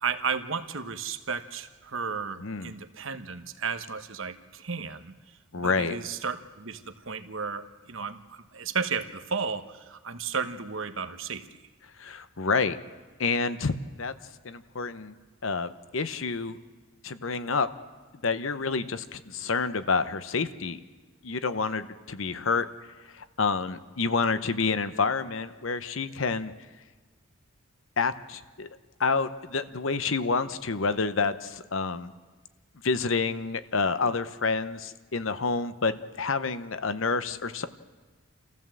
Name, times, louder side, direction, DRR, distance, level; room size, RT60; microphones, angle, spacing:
voice 1, 0.0-11.6, right 5 dB, 70° right, 10 dB, 1.1 m, -34 dB
voice 2, 2.4-2.7 5.5-6.0 12.0-12.8 13.2-14.1 14.4-15.2 15.4-16.6 17.0-17.7 18.2-20.8 21.2-22.7 23.0-26.5 28.0-28.7 29.0-32.1 32.8-37.7, left 4 dB, 70° left, 12 dB, 0.9 m, -28 dB
28.0 x 14.5 x 7.6 m, 1.4 s
head